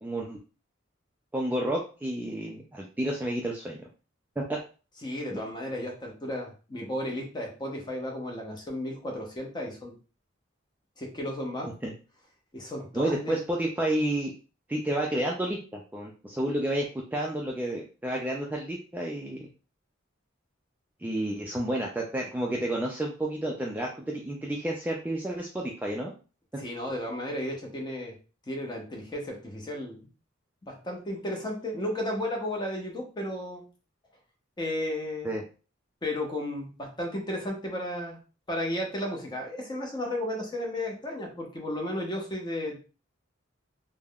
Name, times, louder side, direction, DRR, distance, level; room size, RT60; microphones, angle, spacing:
voice 1, 0.0-0.4 1.3-3.8 4.4-4.6 5.3-5.4 11.8-11.9 12.9-14.3 14.7-16.9 17.1-19.5 21.0-26.1 35.2-35.4, right 1 dB, 10° right, -2 dB, 0.3 m, -30 dB
voice 2, 5.0-9.9 11.0-11.7 12.5-13.4 26.6-28.2 28.5-30.1 30.7-33.6 34.6-35.3 36.0-38.2 38.5-42.8, left 1 dB, 20° left, 0 dB, 0.7 m, -34 dB
3.4 x 2.0 x 2.3 m, 0.35 s
head